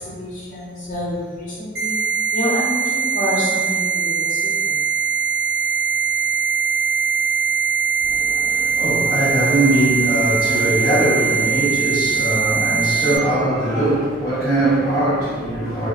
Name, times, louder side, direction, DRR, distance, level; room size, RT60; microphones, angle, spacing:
voice 1, 0.0-2.0 2.3-4.8, equal, 45° left, -8 dB, 0.8 m, -27 dB
sound 1, 1.8-13.2, right 6 dB, 55° right, 0.6 m, -21 dB
voice 2, 8.0-15.9, right 1 dB, 10° right, -18 dB, 1.3 m, -21 dB
2.3 x 2.0 x 2.8 m, 1.5 s
head